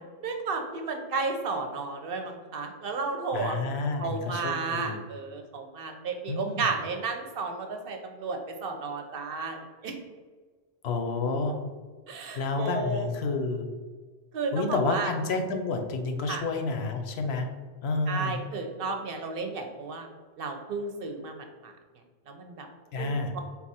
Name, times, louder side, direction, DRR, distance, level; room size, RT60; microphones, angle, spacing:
voice 1, 0.2-3.6 4.0-9.9 12.1-13.1 14.3-15.1 16.3-16.4 18.1-20.1 20.4-21.7 22.3-22.7 23.0-23.4, right 4 dB, 65° right, 4 dB, 0.8 m, -33 dB
voice 2, 3.3-5.0 6.3-6.7 10.8-11.6 12.4-13.7 14.5-17.5 17.8-18.4 22.9-23.3, left 3 dB, 75° left, 5 dB, 0.9 m, -29 dB
4.0 x 2.4 x 4.1 m, 1.4 s
omnidirectional pair, 1.1 m